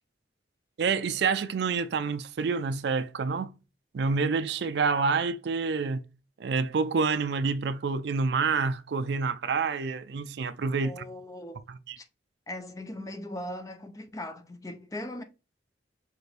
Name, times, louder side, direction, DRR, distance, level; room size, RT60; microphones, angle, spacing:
voice 1, 0.8-3.6 3.9-6.0 6.4-11.1 11.9-12.0, right 4 dB, 60° right, 0.4 m, -28 dB
voice 2, 10.8-11.6 12.0-12.1 12.5-15.2, left 1 dB, 20° left, 0.5 m, -39 dB
6.0 x 2.5 x 3.3 m
head